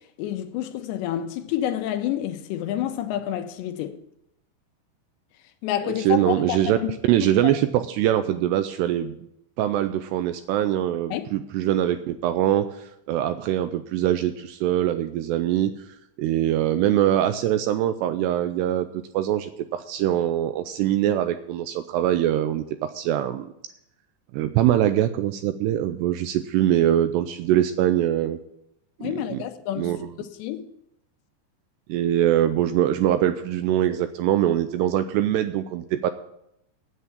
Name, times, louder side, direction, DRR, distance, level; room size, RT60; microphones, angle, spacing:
voice 1, 0.2-4.0 5.6-6.9 7.4-7.5 11.1-11.3 29.0-30.7, left 11 dB, 80° left, 2.8 m, -29 dB
voice 2, 5.8-6.8 7.1-9.2 9.6-15.7 16.2-18.9 19.1-23.5 24.3-28.4 29.0-29.4 29.8-30.0 31.9-36.1, right 12 dB, 85° right, 2.5 m, -23 dB
9.5 x 8.5 x 8.3 m
omnidirectional pair, 5.2 m